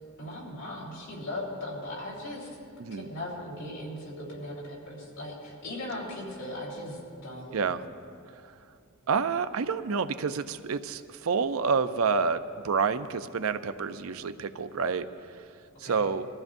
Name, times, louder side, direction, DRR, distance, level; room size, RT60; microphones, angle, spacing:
voice 1, 0.2-2.5 2.9-7.6 15.8-16.0, left 1 dB, 80° left, -4 dB, 4.1 m, -38 dB
voice 2, 9.1-15.1 15.8-16.3, right 5 dB, 75° right, 11 dB, 0.5 m, -28 dB
23.5 x 14.5 x 2.6 m, 2.3 s
head